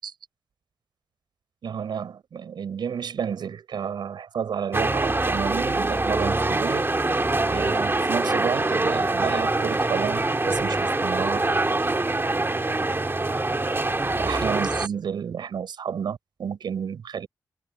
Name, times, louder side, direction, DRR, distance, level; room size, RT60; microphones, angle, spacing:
voice 1, 1.6-6.9 7.5-11.5 14.0-17.3, right 7 dB, 85° right, 6.7 m, -31 dB
sound 1, 4.7-14.9, right 2 dB, 30° right, 2.4 m, -24 dB
cardioid pair, 45°, 7 cm